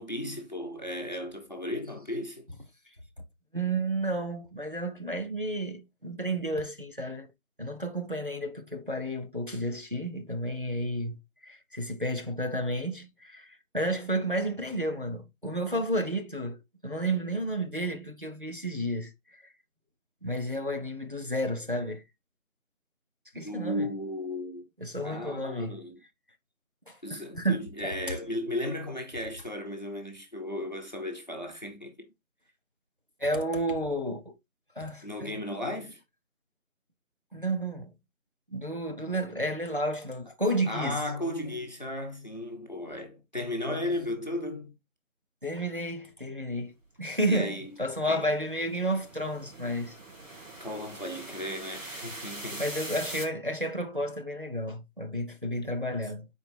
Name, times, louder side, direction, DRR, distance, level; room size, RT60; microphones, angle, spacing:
voice 1, 0.0-2.5 23.4-24.7 25.0-26.0 27.0-32.1 35.0-36.0 40.7-44.7 47.2-47.7 48.1-48.3 50.6-52.6 55.6-55.7, left 1 dB, 30° left, 1.0 m, -35 dB
voice 2, 3.5-7.3 7.6-16.6 16.8-19.4 20.2-22.0 23.3-23.8 24.8-25.8 26.9-28.1 33.2-34.3 34.8-35.4 37.3-37.9 38.5-41.0 45.4-49.9 52.6-56.3, right 1 dB, 40° right, 0.7 m, -31 dB
sound 1, 47.2-53.2, right 2 dB, 65° right, 2.5 m, -43 dB
8.7 x 4.5 x 3.3 m
figure-of-eight pair, 180°, 42 cm